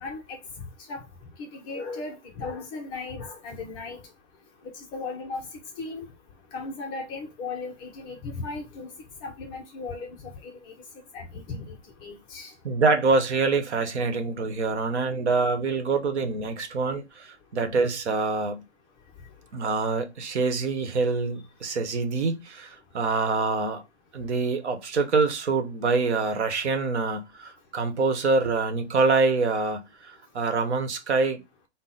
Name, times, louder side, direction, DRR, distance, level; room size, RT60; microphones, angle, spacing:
voice 1, 0.0-0.4 0.9-1.1 1.4-4.0 4.6-5.5 5.8-6.1 6.5-8.9 9.2-10.7 11.1-12.5, left 3 dB, 15° left, 0.4 m, -36 dB
voice 2, 12.6-18.6 19.5-23.8 24.1-31.4, right 4 dB, 75° right, 1.0 m, -25 dB
5.5 x 2.1 x 3.9 m
hypercardioid pair, 130°, 34 cm